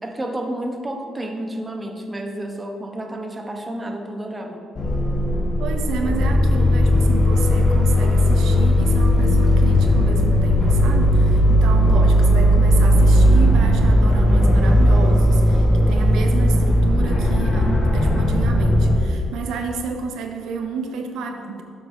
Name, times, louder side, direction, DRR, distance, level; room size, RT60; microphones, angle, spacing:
voice 1, 0.0-4.6, right 1 dB, 15° right, 3 dB, 0.9 m, -30 dB
sound 1, 4.7-19.0, equal, 40° left, 1.4 m, -16 dB
voice 2, 5.6-21.6, right 5 dB, 85° right, 4 dB, 0.7 m, -30 dB
7.6 x 4.0 x 6.3 m, 2.2 s
cardioid pair, 90°, 0 cm